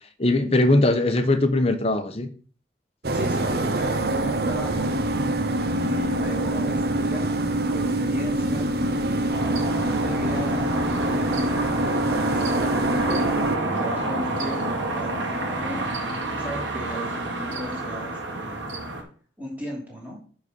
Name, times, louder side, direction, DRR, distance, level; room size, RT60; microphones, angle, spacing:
voice 1, 0.2-2.3, left 2 dB, 35° left, 8 dB, 0.9 m, -20 dB
sound 1, 3.0-13.6, right 1 dB, 55° right, 0.8 m, -25 dB
voice 2, 3.1-4.9 5.7-8.7 9.5-11.7 12.1-14.7 14.9-18.6 19.4-20.2, equal, 10° right, -3 dB, 3.0 m, -36 dB
sound 2, 9.3-19.0, right 2 dB, 90° right, 1.9 m, -28 dB
10.0 x 4.2 x 5.3 m, 0.43 s
head